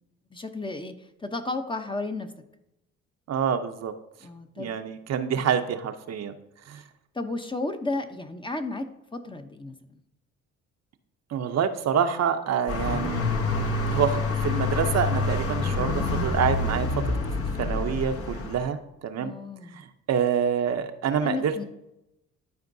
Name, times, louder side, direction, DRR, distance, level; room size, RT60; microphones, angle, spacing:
voice 1, 0.3-2.3 4.2-4.7 7.1-10.0 19.2-19.8 21.2-21.6, left 2 dB, 15° left, 7 dB, 0.7 m, -33 dB
voice 2, 3.3-3.9 4.6-6.3 6.7-6.8 11.3-13.2 13.9-17.1 17.6-19.3 19.7-21.6, right 7 dB, 60° right, 7 dB, 0.7 m, -27 dB
sound 1, 12.7-18.6, left 3 dB, 50° left, 1.0 m, -27 dB
12.0 x 4.4 x 2.7 m, 0.87 s
cardioid pair, 90°, 30 cm